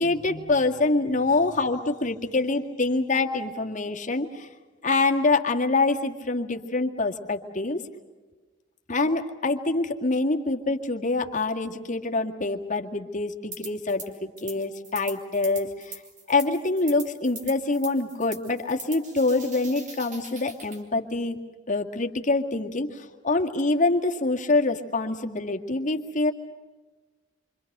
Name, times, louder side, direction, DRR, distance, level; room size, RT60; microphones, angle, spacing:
voice 1, 0.0-4.5 4.8-7.8 8.9-16.0 16.3-21.4 21.7-26.3, left 3 dB, 40° left, 3 dB, 2.0 m, -25 dB
sound 1, 13.5-14.1 14.4-20.8, right 3 dB, 40° right, 3.7 m, -42 dB
28.0 x 25.5 x 6.7 m, 1.3 s
head